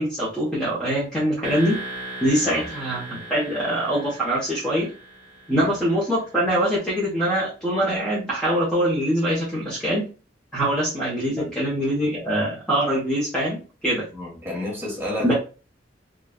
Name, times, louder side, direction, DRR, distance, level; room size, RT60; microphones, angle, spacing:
voice 1, 0.0-1.8 2.2-4.9 5.5-10.1 10.5-14.1 15.2-15.3, equal, 5° left, 0.9 m, -23 dB
sound 1, 1.4-6.3, right 1 dB, 40° right, 0.9 m, -38 dB
voice 2, 14.1-15.3, left 1 dB, 15° right, 1.3 m, -30 dB
3.8 x 2.3 x 2.2 m
head